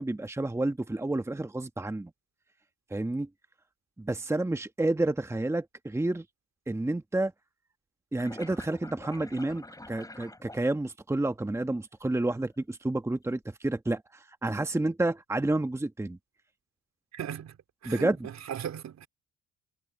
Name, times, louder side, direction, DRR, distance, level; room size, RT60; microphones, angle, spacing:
voice 1, 0.0-2.1 2.9-3.3 4.0-6.2 6.7-7.3 8.1-14.0 14.4-16.2 17.8-18.2, right 2 dB, 10° right, 1.1 m, -30 dB
sound 1, 8.2-11.2 12.0-12.5, left 2 dB, 10° left, 5.6 m, -47 dB
voice 2, 17.1-17.6 17.8-19.1, right 9 dB, 65° right, 3.1 m, -37 dB
cardioid pair, 90°, 30 cm